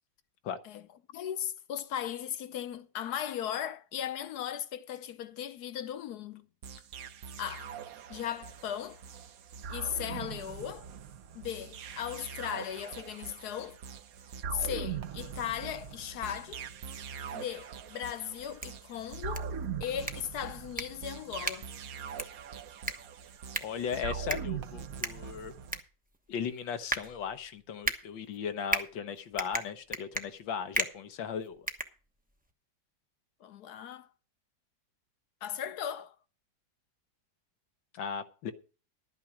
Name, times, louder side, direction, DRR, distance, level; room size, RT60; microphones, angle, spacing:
voice 1, 1.1-6.5 7.4-7.7 8.1-9.0 9.7-10.9 11.3-13.8 14.5-16.6 17.3-19.5 19.8-21.7 33.4-34.1 35.4-36.2, left 10 dB, 65° left, 1.2 m, -37 dB
sound 1, 6.6-25.8, right 6 dB, 60° right, 1.0 m, -42 dB
sound 2, 18.4-32.5, right 1 dB, 10° right, 0.5 m, -38 dB
voice 2, 23.6-25.5 26.3-31.7 37.9-38.5, left 7 dB, 85° left, 1.8 m, -37 dB
12.0 x 9.1 x 5.0 m
omnidirectional pair, 2.0 m